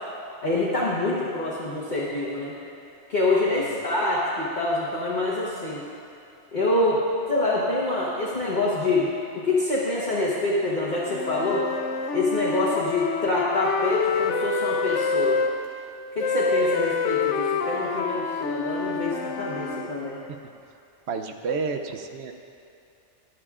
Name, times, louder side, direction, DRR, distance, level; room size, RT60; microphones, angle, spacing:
voice 1, 0.4-2.5 3.1-5.8 6.5-7.0 7.3-9.1 9.3-11.7 12.1-15.4 16.1-20.2, left 2 dB, 40° left, -8 dB, 1.3 m, -26 dB
Wind instrument woodwind instrument, 11.1-15.5 16.2-19.9, left 5 dB, 80° left, 0.9 m, -27 dB
voice 2, 21.1-22.3, right 4 dB, 70° right, 6 dB, 0.9 m, -30 dB
22.0 x 7.5 x 2.4 m, 2.6 s
omnidirectional pair, 1.2 m